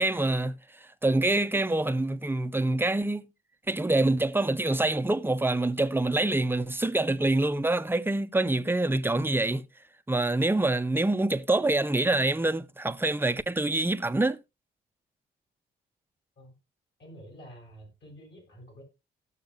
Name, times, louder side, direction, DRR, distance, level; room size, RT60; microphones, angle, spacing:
voice 1, 0.0-3.3 3.7-9.7 10.1-14.4, right 2 dB, 10° right, 0.7 m, -26 dB
voice 2, 17.0-18.8, equal, 60° left, 6.6 m, -49 dB
16.5 x 6.6 x 2.5 m
cardioid pair, 90°, 20 cm